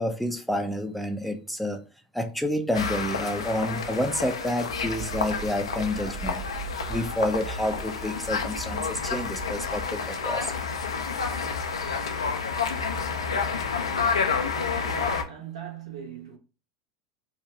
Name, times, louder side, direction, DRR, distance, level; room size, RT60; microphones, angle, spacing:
voice 1, 0.0-1.8 2.1-6.5 6.9-10.5, left 1 dB, ahead, 0.4 m, -29 dB
sound 1, 2.7-15.2, left 5 dB, 85° left, 0.4 m, -30 dB
sound 2, 4.7-10.1, right 5 dB, 45° right, 1.0 m, -40 dB
voice 2, 14.8-16.4, right 8 dB, 75° right, 0.9 m, -39 dB
2.6 x 2.2 x 3.2 m
hypercardioid pair, 90°, 3 cm